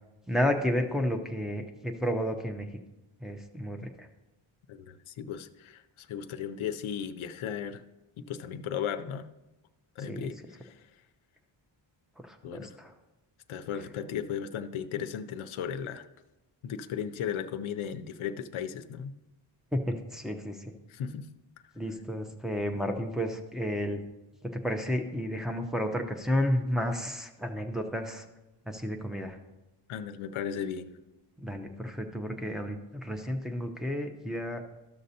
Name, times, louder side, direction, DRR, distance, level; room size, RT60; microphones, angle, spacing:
voice 1, 0.3-2.7 3.2-4.1 10.1-10.3 12.2-12.9 19.7-20.7 21.7-24.0 24.4-28.2 28.7-29.4 31.4-34.6, equal, ahead, 4 dB, 0.6 m, -32 dB
voice 2, 4.7-7.8 8.3-9.3 10.0-10.9 12.4-12.8 13.5-16.1 16.6-19.1 20.9-21.3 29.9-31.0, left 8 dB, 70° left, 10 dB, 0.6 m, -36 dB
13.0 x 6.4 x 2.8 m, 1.0 s
wide cardioid pair, 150°, 50 cm